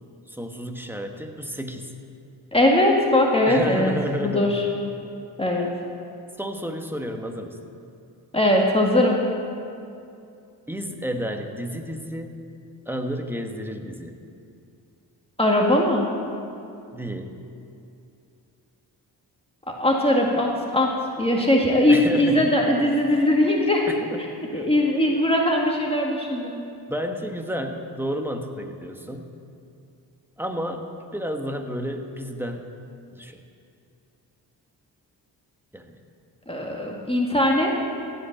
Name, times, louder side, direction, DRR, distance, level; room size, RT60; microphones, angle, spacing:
voice 1, 0.3-1.9 3.5-4.6 6.4-7.6 10.7-12.4 12.9-14.2 16.9-17.4 21.9-22.6 23.9-24.2 24.5-24.7 26.9-29.3 30.4-32.7 33.1-33.4 35.7-36.0, equal, 5° right, 4 dB, 1.4 m, -31 dB
voice 2, 2.5-3.9 4.2-4.6 5.4-5.7 8.3-9.2 15.4-16.1 19.8-20.9 21.2-23.9 24.5-26.6 36.5-37.7, left 1 dB, 15° left, -1 dB, 2.0 m, -20 dB
16.5 x 5.4 x 8.7 m, 2.5 s
supercardioid pair, 50°, 42 cm